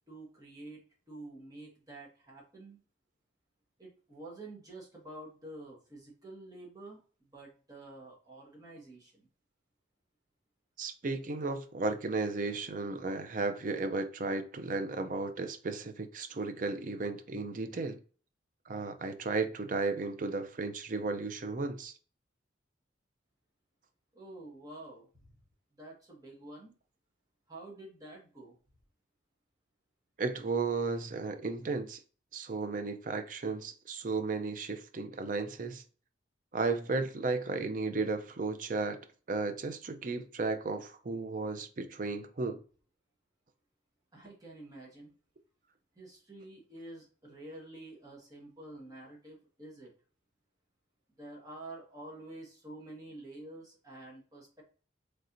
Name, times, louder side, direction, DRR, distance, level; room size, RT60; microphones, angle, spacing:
voice 1, 0.1-0.8 1.1-2.8 3.8-9.3 24.1-25.4 25.7-26.7 27.5-28.6 44.1-45.1 45.9-49.9 51.2-54.6, right 2 dB, 20° right, 1.3 m, -49 dB
voice 2, 10.8-18.0 18.7-21.9 30.2-32.0 32.3-35.8 36.5-39.0 39.3-42.6, right 3 dB, 45° right, 0.5 m, -34 dB
4.3 x 3.2 x 2.6 m
head